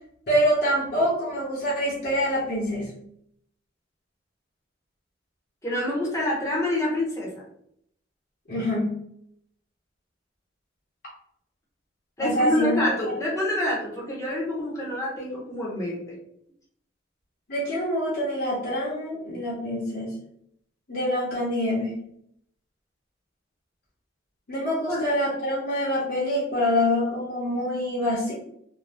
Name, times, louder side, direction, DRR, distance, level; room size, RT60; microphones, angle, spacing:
voice 1, 0.3-2.9 8.5-9.0 12.2-12.7 17.5-20.1 20.9-22.0 24.5-28.3, equal, 55° left, -7 dB, 0.9 m, -25 dB
voice 2, 5.6-7.3 12.2-16.2 24.9-25.0, left 1 dB, 15° left, -5 dB, 0.9 m, -27 dB
2.6 x 2.2 x 3.4 m, 0.71 s
head